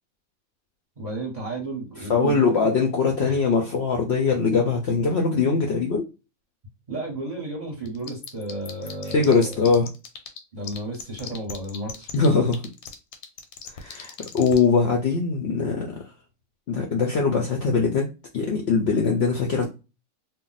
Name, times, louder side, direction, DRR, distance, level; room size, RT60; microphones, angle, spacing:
voice 1, 1.0-2.7 3.2-3.4 6.9-9.7 10.5-12.1, right 2 dB, 35° right, 0.8 m, -33 dB
voice 2, 2.1-6.0 9.1-9.9 12.1-12.7 13.7-16.0 16.7-18.1 18.3-19.7, left 4 dB, 65° left, 0.6 m, -22 dB
sound 1, 7.9-10.4 10.6-14.6, left 10 dB, 90° left, 1.1 m, -37 dB
2.5 x 2.0 x 3.9 m
omnidirectional pair, 1.5 m